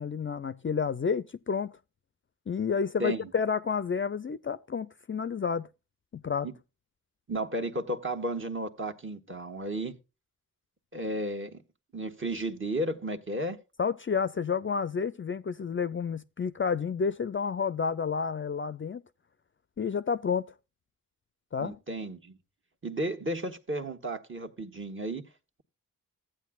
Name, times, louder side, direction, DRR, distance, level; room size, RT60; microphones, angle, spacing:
voice 1, 0.0-1.7 2.5-5.7 6.1-6.5 13.8-19.0 19.8-20.5 21.5-21.8, left 6 dB, 35° left, 0.5 m, -30 dB
voice 2, 3.0-3.3 6.4-6.5 7.3-10.0 10.9-11.6 11.9-13.6 21.6-22.4 22.8-25.2, right 1 dB, 35° right, 1.4 m, -33 dB
14.5 x 8.8 x 2.3 m
cardioid pair, 65°, 34 cm